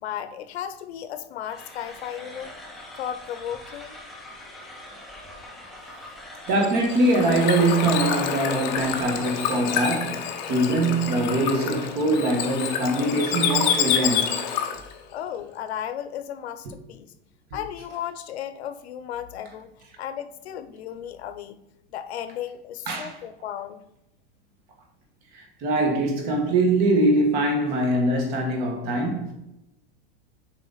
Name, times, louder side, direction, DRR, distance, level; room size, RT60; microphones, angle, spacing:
voice 1, 0.0-2.6 3.0-4.0 14.8-17.1 17.5-19.7 20.0-21.6 21.9-23.8, left 10 dB, 85° left, 0.8 m, -35 dB
sound 1, 1.4-9.9, left 1 dB, ahead, 0.4 m, -43 dB
Bird / Water, 6.5-14.9, left 8 dB, 45° left, 0.9 m, -27 dB
voice 2, 6.5-14.4 22.9-23.1 25.3-29.3, right 2 dB, 30° right, 1.3 m, -23 dB
7.3 x 4.9 x 4.0 m
supercardioid pair, 175°, 31 cm